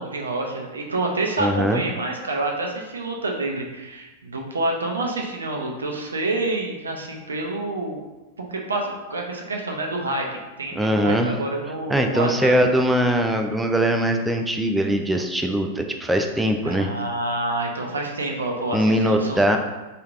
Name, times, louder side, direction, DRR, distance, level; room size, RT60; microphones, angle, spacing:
voice 1, 0.0-8.0 8.5-10.3 10.6-12.6 16.6-19.6, right 2 dB, 85° right, 1 dB, 0.5 m, -28 dB
voice 2, 1.4-1.8 10.8-11.3 11.9-16.9 18.7-19.6, equal, 5° right, 3 dB, 0.3 m, -21 dB
3.1 x 2.4 x 2.4 m, 1.1 s
hypercardioid pair, 100°, 0 cm